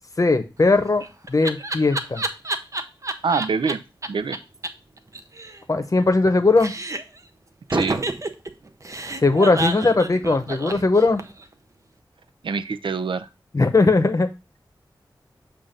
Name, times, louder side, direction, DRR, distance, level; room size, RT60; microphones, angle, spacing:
voice 1, 0.2-2.2 5.7-6.7 9.2-11.2 13.5-14.3, left 3 dB, 40° left, 8 dB, 0.8 m, -19 dB
Laughter, 0.6-3.7 4.0-4.1 4.3-4.4 4.6-4.7 5.0-6.3 6.6-7.2 7.7-11.4, right 2 dB, 40° right, 0.7 m, -29 dB
voice 2, 3.2-3.8 4.1-4.4 7.7-8.0 12.4-13.3, right 5 dB, 80° right, 13 dB, 0.4 m, -25 dB
7.4 x 2.5 x 5.1 m, 0.28 s
wide cardioid pair, 65°, 8 cm